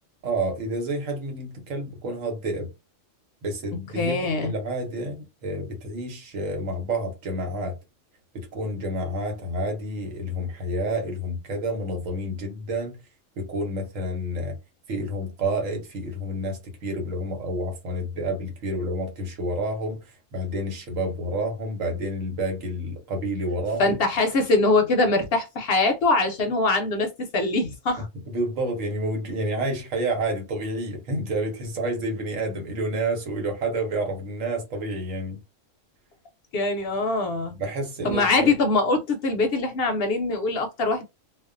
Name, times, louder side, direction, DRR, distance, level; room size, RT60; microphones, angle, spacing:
voice 1, 0.2-2.7 3.4-7.8 8.3-13.0 13.4-14.6 14.9-24.0 28.3-35.4 37.5-38.5, right 1 dB, 85° right, 1.2 m, -29 dB
voice 2, 4.0-4.5 23.8-28.1 36.5-37.5 38.0-41.0, left 3 dB, 65° left, 0.6 m, -23 dB
2.4 x 2.2 x 2.4 m
omnidirectional pair, 1.3 m